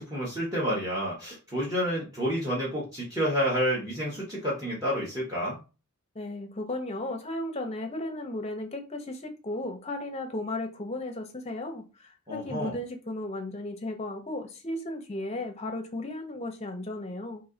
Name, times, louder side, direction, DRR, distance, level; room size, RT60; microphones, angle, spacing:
voice 1, 0.0-5.6 12.3-12.8, equal, 15° right, 1.1 m, -29 dB
voice 2, 6.1-17.4, left 1 dB, 30° left, 0.6 m, -35 dB
3.1 x 2.8 x 3.8 m
head